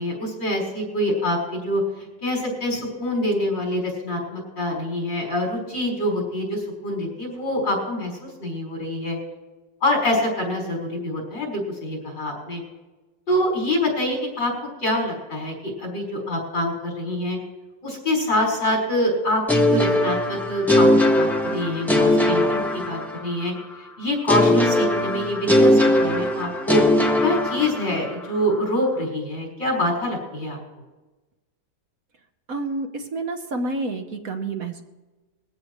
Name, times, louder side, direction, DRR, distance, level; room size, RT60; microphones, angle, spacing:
voice 1, 0.0-1.8 2.2-9.2 9.8-12.6 13.3-14.5 14.8-17.4 17.8-23.5 23.8-26.8 27.2-30.6, left 1 dB, 90° left, -2 dB, 5.3 m, -25 dB
sound 1, 19.5-23.4 24.3-28.1, left 1 dB, ahead, 0.9 m, -19 dB
voice 2, 32.5-34.8, right 2 dB, 55° right, 6 dB, 1.3 m, -29 dB
21.0 x 15.5 x 3.1 m, 1.2 s
omnidirectional pair, 1.9 m